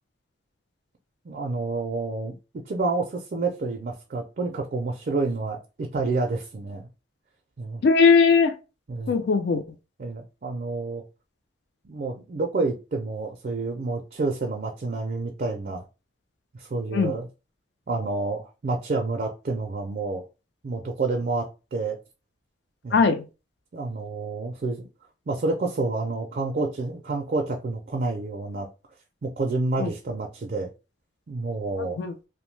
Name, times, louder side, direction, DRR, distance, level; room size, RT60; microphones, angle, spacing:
voice 1, 1.2-2.3 2.7-6.9 7.6-7.8 8.9-9.2 10.0-11.0 11.8-15.8 16.5-17.3 17.9-20.2 20.6-22.0 22.8-23.0 23.7-24.9 25.3-28.7 29.2-30.7 31.3-32.0, right 3 dB, 45° right, 0.4 m, -29 dB
voice 2, 7.8-8.5 9.1-9.6 16.9-17.1 22.9-23.2 29.8-29.9 31.8-32.1, left 5 dB, 60° left, 0.3 m, -19 dB
2.6 x 2.1 x 3.1 m
head